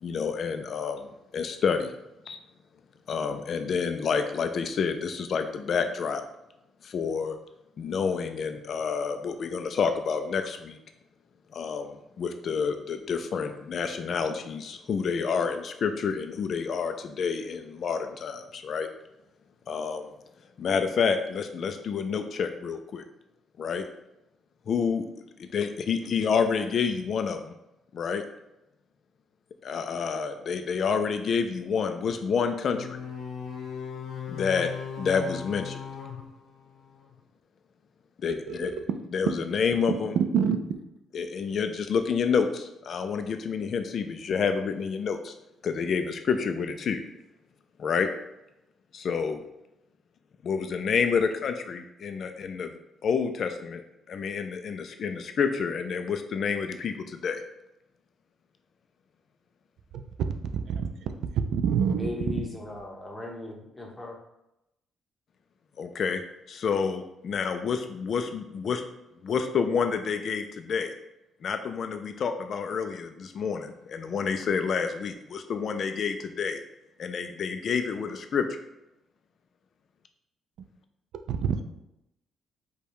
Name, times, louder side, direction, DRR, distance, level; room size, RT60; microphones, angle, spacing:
voice 1, 0.0-1.9 2.3-2.4 3.1-6.2 6.8-7.4 7.8-10.8 11.5-18.9 19.7-20.1 20.6-23.0 23.6-23.9 24.7-25.1 25.5-27.5 27.9-28.2 29.6-33.0 34.3-34.7 35.0-35.8 38.2-38.7 39.1-40.2 41.1-45.3 45.6-47.0 47.8-48.1 48.9-49.4 50.5-53.8 54.1-57.4 65.8-66.2 66.5-68.8 69.2-70.9 71.4-73.0 73.4-76.6 77.0-78.6, left 6 dB, 45° left, 0.3 m, -28 dB
sound 1, 32.7-37.2, left 7 dB, 60° left, 0.7 m, -38 dB
voice 2, 40.1-40.6 60.7-60.9 61.5-62.1 81.3-81.6, right 7 dB, 70° right, 0.4 m, -25 dB
voice 3, 61.9-64.2, left 2 dB, 10° left, 0.8 m, -37 dB
5.1 x 2.2 x 4.6 m
cardioid pair, 165°, 0 cm